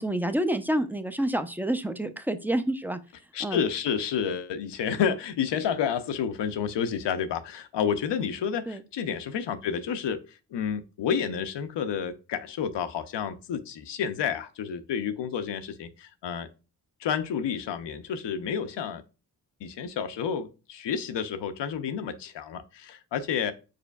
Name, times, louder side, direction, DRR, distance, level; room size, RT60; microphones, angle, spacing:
voice 1, 0.0-3.0 3.4-3.6 8.7-8.8, right 1 dB, 5° right, 10 dB, 0.5 m, -28 dB
voice 2, 3.3-16.5 17.0-19.0 19.6-23.5, left 7 dB, 75° left, 10 dB, 0.6 m, -30 dB
5.0 x 4.3 x 2.3 m, 0.32 s
supercardioid pair, 40°, 43 cm